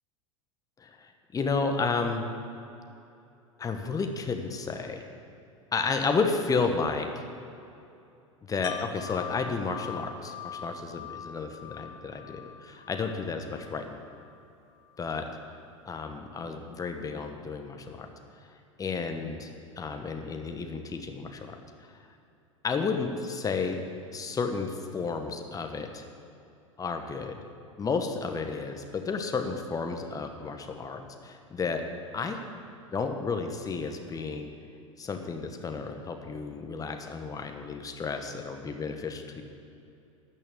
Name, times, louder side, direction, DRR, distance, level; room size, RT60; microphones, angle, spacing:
voice 1, 0.8-2.2 3.6-5.0 5.7-7.2 8.5-14.0 15.0-15.2 15.9-18.1 18.8-19.5 19.8-22.0 22.6-23.8 24.1-26.0 26.8-27.4 27.8-31.8 32.1-32.4 32.9-34.5 35.0-39.4, left 4 dB, 20° left, 5 dB, 1.3 m, -32 dB
Wind chime, 8.6-14.4 14.8-15.0, left 8 dB, 60° left, 1.1 m, -43 dB
12.5 x 6.3 x 8.4 m, 2.7 s
figure-of-eight pair, 85°, 17 cm